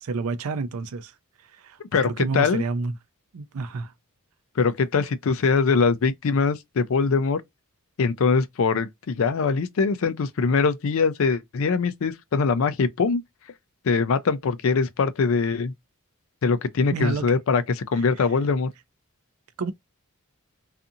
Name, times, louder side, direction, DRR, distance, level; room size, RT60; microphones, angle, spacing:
voice 1, 0.0-1.1 1.6-2.9 3.3-3.9 16.9-17.3 19.6-19.7, right 4 dB, 75° right, 0.4 m, -29 dB
voice 2, 1.9-2.6 4.6-7.4 8.0-13.2 13.8-15.7 16.4-18.7, left 5 dB, 65° left, 0.4 m, -22 dB
2.7 x 2.5 x 2.4 m
head